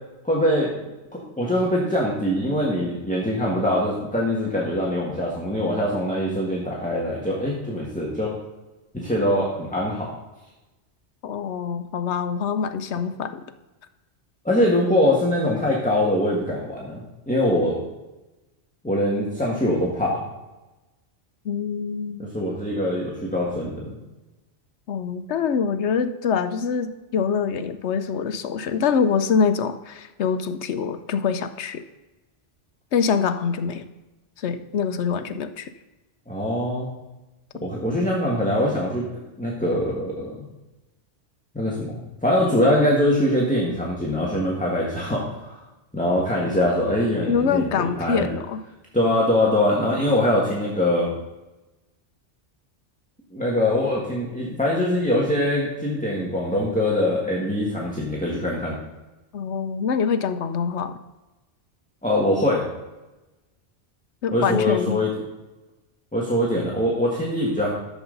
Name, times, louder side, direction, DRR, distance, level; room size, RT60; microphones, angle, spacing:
voice 1, 0.2-0.7 1.1-8.3 8.9-10.1 14.4-17.9 18.8-20.2 22.3-24.0 36.3-36.9 37.6-39.0 39.4-40.4 41.5-41.9 42.2-45.5 45.9-48.3 48.9-51.1 53.3-58.8 62.0-62.6 64.3-65.1 66.1-67.7, left 1 dB, 5° left, -4 dB, 1.6 m, -23 dB
voice 2, 11.2-13.4 21.4-22.3 24.9-31.8 32.9-33.8 34.4-35.7 47.3-48.6 59.3-61.0 64.2-65.0, left 6 dB, 75° left, 10 dB, 0.9 m, -24 dB
11.5 x 7.3 x 3.9 m, 1.1 s
omnidirectional pair, 1.2 m